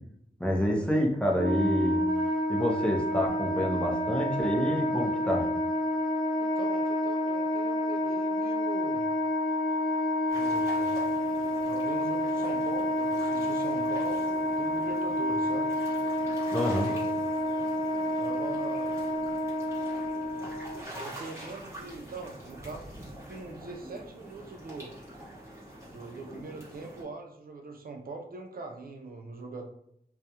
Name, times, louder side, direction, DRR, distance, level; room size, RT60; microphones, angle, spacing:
voice 1, 0.4-2.0 2.5-5.5 16.5-16.9, equal, 5° left, -1 dB, 0.5 m, -28 dB
Wind instrument woodwind instrument, 1.3-20.8, left 1 dB, 60° left, 0.4 m, -29 dB
voice 2, 6.4-9.0 10.3-11.0 11.7-15.7 16.5-17.2 18.2-18.9 20.9-22.9 23.2-24.9 25.9-29.7, right 3 dB, 65° right, 3 dB, 0.4 m, -41 dB
sound 1, 10.3-27.0, equal, 15° right, 0.9 m, -45 dB
2.3 x 2.0 x 2.7 m, 0.72 s
wide cardioid pair, 85°, 17 cm